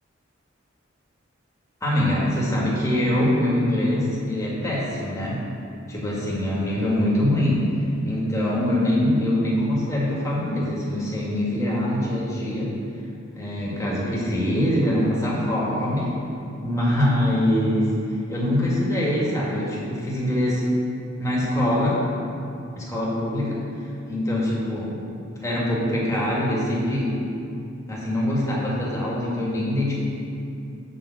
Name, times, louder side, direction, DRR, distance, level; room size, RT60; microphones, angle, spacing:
voice 1, 1.8-5.4 5.9-7.6 8.1-12.7 13.4-16.1 16.6-17.9 18.3-20.6 21.2-22.0 22.8-23.6 24.1-25.0 25.4-27.1 27.9-29.9, left 1 dB, 15° left, -6 dB, 2.0 m, -23 dB
6.9 x 5.5 x 7.1 m, 2.6 s
head